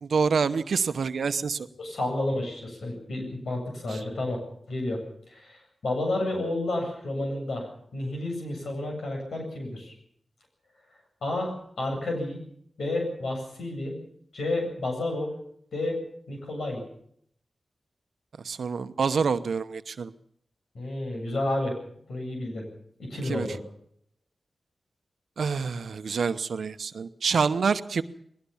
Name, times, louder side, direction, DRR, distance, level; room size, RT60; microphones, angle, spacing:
voice 1, 0.0-1.7 3.9-4.0 18.4-20.1 23.3-23.5 25.4-28.0, right 5 dB, 80° right, 12 dB, 0.9 m, -27 dB
voice 2, 1.8-4.4 4.7-5.0 5.3-7.7 7.9-10.0 11.2-12.4 12.8-14.0 14.3-15.3 15.7-16.0 16.3-16.8 20.7-21.8 22.1-22.6 23.1-23.6, left 2 dB, 85° left, 2 dB, 7.9 m, -30 dB
20.5 x 18.5 x 7.2 m, 0.68 s
cardioid pair, 50°, 0 cm